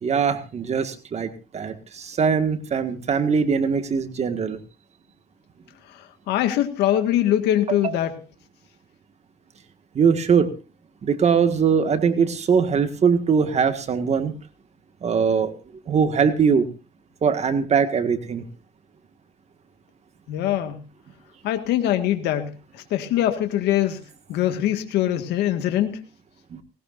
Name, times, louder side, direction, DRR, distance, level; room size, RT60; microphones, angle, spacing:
voice 1, 0.0-4.6 7.7-7.8 10.0-10.5 11.0-14.3 15.0-15.5 15.9-16.7 17.2-18.4 26.5-26.6, right 6 dB, 40° right, 8 dB, 1.8 m, -21 dB
voice 2, 6.3-8.1 20.3-20.8 21.4-24.0 24.3-26.0, left 12 dB, 80° left, 7 dB, 1.8 m, -23 dB
19.5 x 18.5 x 2.6 m, 0.31 s
cardioid pair, 110°, 17 cm